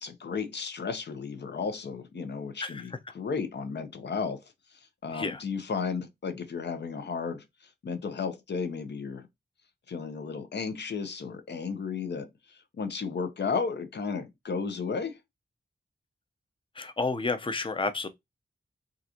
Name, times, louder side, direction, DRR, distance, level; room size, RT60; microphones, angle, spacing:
voice 1, 0.0-4.5 5.0-7.4 7.8-9.3 9.9-12.3 12.8-15.2, left 5 dB, 70° left, 0.7 m, -33 dB
voice 2, 2.6-3.0 5.1-5.4 16.8-18.1, left 3 dB, 30° left, 0.6 m, -31 dB
3.7 x 2.5 x 2.8 m
wide cardioid pair, 105°, 19 cm